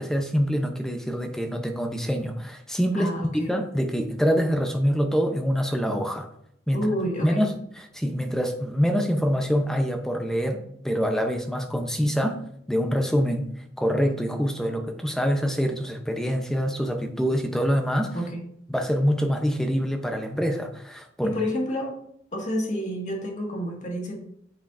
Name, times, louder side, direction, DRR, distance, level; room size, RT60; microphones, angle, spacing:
voice 1, 0.0-3.1 3.5-6.3 6.7-6.9 7.2-12.4 12.7-18.2 18.7-21.4, equal, 5° left, 4 dB, 0.8 m, -25 dB
voice 2, 2.9-3.5 6.7-7.4 18.1-18.4 21.2-22.0 22.3-24.2, equal, 40° left, -1 dB, 2.0 m, -29 dB
9.0 x 7.0 x 2.7 m, 0.72 s
head